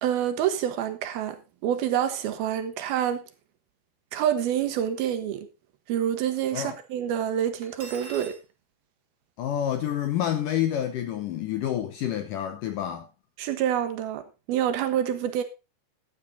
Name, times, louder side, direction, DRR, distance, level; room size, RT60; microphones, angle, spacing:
voice 1, 0.0-3.2 4.1-5.5 5.9-8.4 13.4-15.4, right 10 dB, 70° right, 2.7 m, -27 dB
Cutlery silverware, 7.6-8.4, right 4 dB, 40° right, 2.1 m, -42 dB
voice 2, 9.4-13.1, left 10 dB, 75° left, 2.0 m, -28 dB
12.5 x 9.2 x 3.8 m
omnidirectional pair, 4.8 m